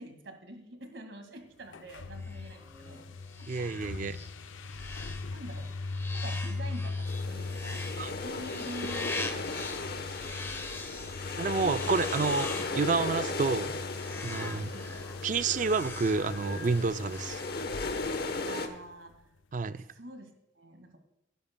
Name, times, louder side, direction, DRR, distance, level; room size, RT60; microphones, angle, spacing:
voice 1, 0.0-3.1 3.4-4.2 5.3-5.7 6.1-10.4 14.7-15.0 18.5-19.2 19.7-21.0, right 1 dB, 75° right, 2.0 m, -46 dB
sound 1, 1.6-19.1, left 3 dB, 80° left, 0.5 m, -40 dB
sound 2, 2.2-18.1, left 2 dB, 15° left, 0.9 m, -43 dB
voice 2, 3.5-4.2 8.0-8.1 11.4-13.8 14.2-14.7 15.2-17.4 19.5-19.8, right 4 dB, 40° right, 0.3 m, -29 dB
sound 3, 7.1-18.7, left 3 dB, 50° left, 1.1 m, -36 dB
19.0 x 10.5 x 2.2 m
head